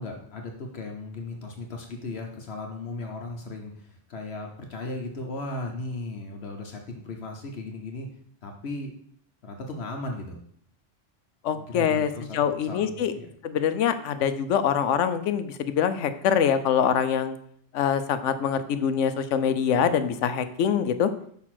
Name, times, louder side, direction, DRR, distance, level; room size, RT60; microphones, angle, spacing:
voice 1, 0.0-8.1 8.4-8.9 9.4-10.4 11.5-13.3 19.7-19.8, left 2 dB, 65° left, 2 dB, 1.1 m, -36 dB
voice 2, 11.4-13.1 13.4-17.4 17.7-21.1, left 8 dB, 90° left, 11 dB, 1.0 m, -24 dB
6.3 x 3.5 x 5.9 m, 0.63 s
omnidirectional pair, 1.2 m